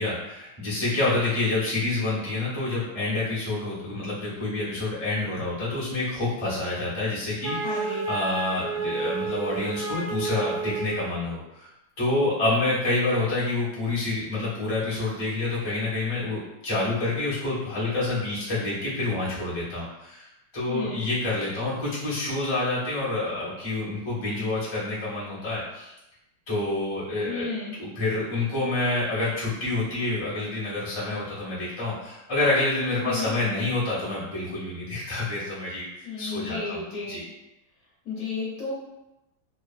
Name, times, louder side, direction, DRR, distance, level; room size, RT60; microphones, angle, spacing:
voice 1, 0.0-11.7 12.0-20.3 20.5-25.9 26.5-37.2, left 2 dB, 20° left, -9 dB, 0.6 m, -28 dB
Wind instrument woodwind instrument, 7.4-11.1, right 4 dB, 75° right, 0.8 m, -30 dB
voice 2, 7.6-8.0 20.7-21.0 27.3-27.8 33.0-33.3 36.0-37.2 38.0-38.7, left 4 dB, 60° left, -8 dB, 1.1 m, -33 dB
3.0 x 2.2 x 2.4 m, 0.93 s
omnidirectional pair, 2.1 m